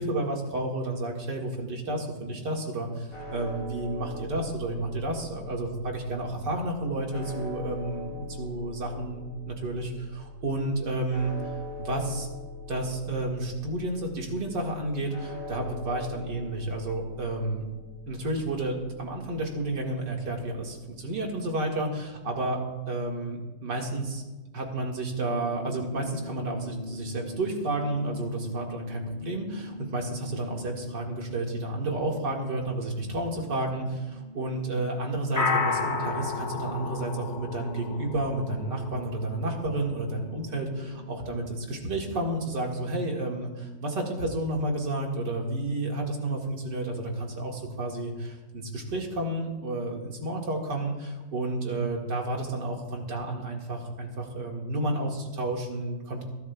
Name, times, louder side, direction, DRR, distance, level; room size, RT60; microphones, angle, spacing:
voice 1, 0.0-11.4 11.8-12.3 12.7-17.6 18.1-22.6 22.9-24.2 24.5-56.2, right 2 dB, 85° right, 0 dB, 2.5 m, -31 dB
sound 1, 3.1-21.3, left 3 dB, 60° left, 3.5 m, -43 dB
sound 2, 25.3-43.0, left 3 dB, 40° left, 0.8 m, -37 dB
25.5 x 12.0 x 2.3 m, 1.2 s
omnidirectional pair, 1.8 m